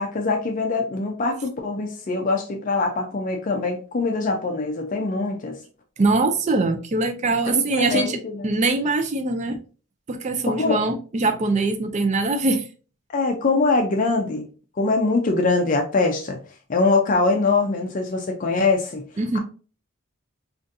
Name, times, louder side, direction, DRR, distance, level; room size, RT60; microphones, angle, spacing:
voice 1, 0.0-5.6 7.5-8.5 10.6-10.8 13.1-14.4 14.7-16.4 16.7-19.0, left 3 dB, 40° left, 0.4 m, -23 dB
voice 2, 6.0-8.2 8.4-9.6 10.1-12.7 19.2-19.4, right 3 dB, 35° right, 0.4 m, -22 dB
3.8 x 2.5 x 2.6 m
head